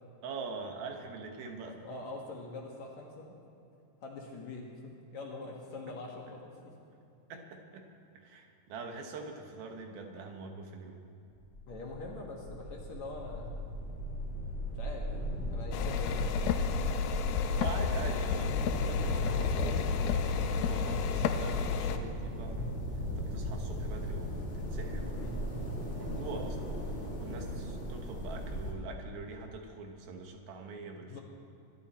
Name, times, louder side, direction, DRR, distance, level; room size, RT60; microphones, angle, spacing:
voice 1, 0.2-1.8 7.3-7.8 8.2-11.1 17.5-22.7 23.2-25.3 25.9-26.7 27.2-31.2, right 4 dB, 75° right, 3 dB, 3.2 m, -43 dB
voice 2, 1.8-3.3 4.0-6.7 11.7-13.5 14.8-15.1 15.4-16.6 25.1-25.4 31.1-31.2, left 3 dB, 55° left, -1 dB, 2.5 m, -44 dB
sound 1, 11.4-28.7, equal, 25° left, 1.6 m, -37 dB
sound 2, 15.7-22.0, left 7 dB, 90° left, 2.6 m, -31 dB
24.0 x 12.0 x 4.4 m, 2.6 s
omnidirectional pair, 4.4 m